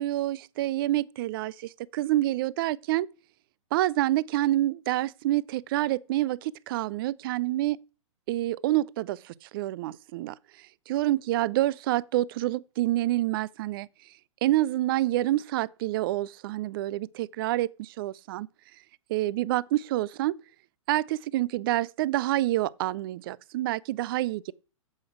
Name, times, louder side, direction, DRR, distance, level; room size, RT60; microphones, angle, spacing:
voice 1, 0.0-3.1 3.7-7.8 8.3-10.4 10.9-13.9 14.4-18.5 19.1-20.4 20.9-24.5, right 15 dB, 40° right, 0.4 m, -27 dB
8.4 x 7.7 x 4.8 m
hypercardioid pair, 120°, 18 cm